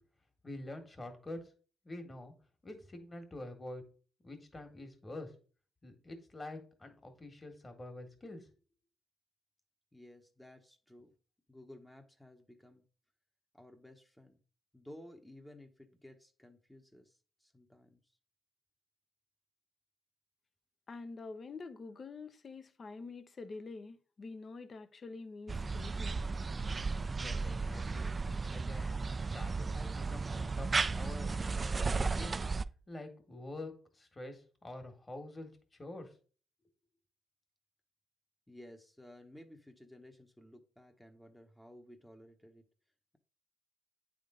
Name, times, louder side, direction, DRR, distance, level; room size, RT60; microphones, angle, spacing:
voice 1, 0.4-1.4 1.8-2.3 2.6-3.8 4.2-5.3 5.8-8.5 27.2-28.1 28.5-29.0 29.3-31.6 31.9-32.4 32.9-35.5 35.8-36.1, left 1 dB, 30° left, 1.7 m, -46 dB
voice 2, 9.9-11.1 11.5-12.8 13.5-14.4 14.7-18.1 38.5-42.6, left 1 dB, 5° left, 0.9 m, -55 dB
voice 3, 20.9-26.1, left 3 dB, 45° left, 0.7 m, -46 dB
sound 1, 25.5-32.6, right 4 dB, 35° right, 0.3 m, -34 dB
9.1 x 3.6 x 3.8 m
cardioid pair, 75°, 0 cm